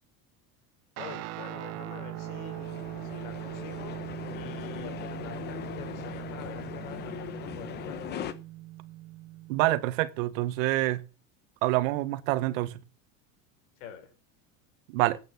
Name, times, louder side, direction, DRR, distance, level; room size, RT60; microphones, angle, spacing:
voice 1, 1.0-4.0 4.3-8.0 13.8-14.1, left 7 dB, 80° left, 5.1 m, -45 dB
Guitar, 1.0-9.8, right 16 dB, 40° right, 0.8 m, -40 dB
sound 1, 2.2-8.3, left 10 dB, 25° left, 0.9 m, -40 dB
voice 2, 9.5-11.0 11.6-12.8 14.9-15.2, right 17 dB, 70° right, 1.2 m, -26 dB
12.5 x 9.1 x 6.9 m
cardioid pair, 175°, 40 cm